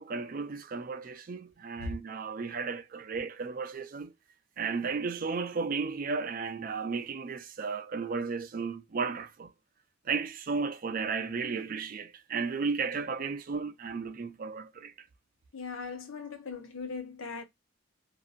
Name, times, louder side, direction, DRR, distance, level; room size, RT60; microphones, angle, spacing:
voice 1, 0.0-4.1 4.6-9.5 10.1-14.9, right 5 dB, 40° right, 0.4 m, -34 dB
voice 2, 15.5-17.4, left 4 dB, 75° left, 0.8 m, -39 dB
2.6 x 2.6 x 2.4 m
head